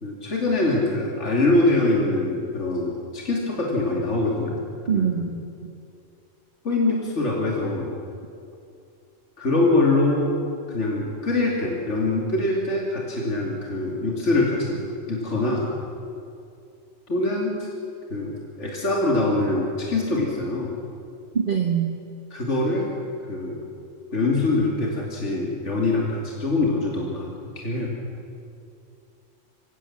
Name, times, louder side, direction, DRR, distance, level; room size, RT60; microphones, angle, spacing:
voice 1, 0.0-4.6 4.9-5.1 6.6-7.9 9.4-10.3 10.7-14.8 15.1-15.7 17.1-17.7 18.1-20.7 22.3-22.9 23.2-23.7 24.1-27.9, left 2 dB, 65° left, -2 dB, 3.1 m, -24 dB
voice 2, 4.9-5.4 21.3-21.9, right 7 dB, 45° right, 3 dB, 1.3 m, -23 dB
25.0 x 17.0 x 7.4 m, 2.5 s
omnidirectional pair, 1.3 m